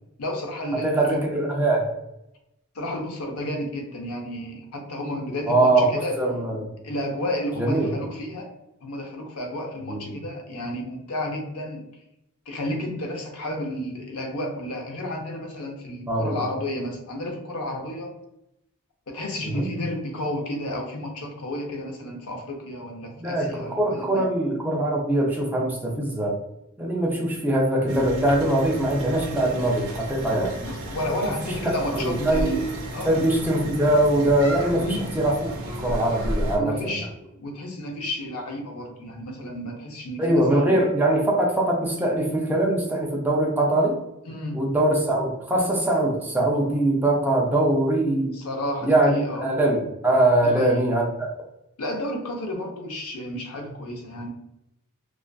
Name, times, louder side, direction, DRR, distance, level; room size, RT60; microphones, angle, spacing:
voice 1, 0.2-1.1 2.7-6.2 6.8-8.5 8.8-11.8 12.5-18.1 19.1-24.3 30.6-32.6 32.9-33.2 34.7-35.1 36.5-40.8 44.3-44.5 48.3-49.5 50.4-50.8 51.8-54.3, left 1 dB, 80° left, 2 dB, 0.6 m, -32 dB
voice 2, 0.7-1.9 5.5-6.7 7.6-8.0 9.9-10.2 16.1-16.4 19.5-19.7 23.2-26.4 26.8-30.5 31.6-32.6 33.1-35.4 35.8-36.9 40.2-44.0 44.5-48.4 48.8-51.1, right 1 dB, 10° right, -2 dB, 0.4 m, -22 dB
sound 1, 27.9-36.6, right 1 dB, 70° right, 0.6 m, -33 dB
2.4 x 2.3 x 2.2 m, 0.85 s
head